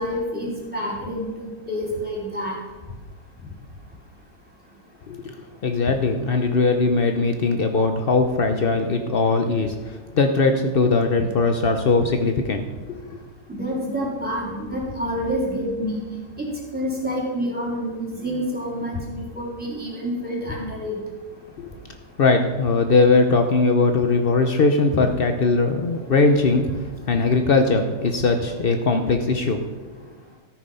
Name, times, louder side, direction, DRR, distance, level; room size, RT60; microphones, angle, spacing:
voice 1, 0.0-2.6 13.5-16.0 16.4-21.0, equal, 5° right, -3 dB, 3.5 m, -28 dB
voice 2, 5.6-12.6 13.0-13.2 21.6-21.7 22.2-26.6 27.1-29.6, left 3 dB, 75° left, 6 dB, 0.5 m, -20 dB
13.5 x 9.4 x 5.5 m, 1.3 s
omnidirectional pair, 2.1 m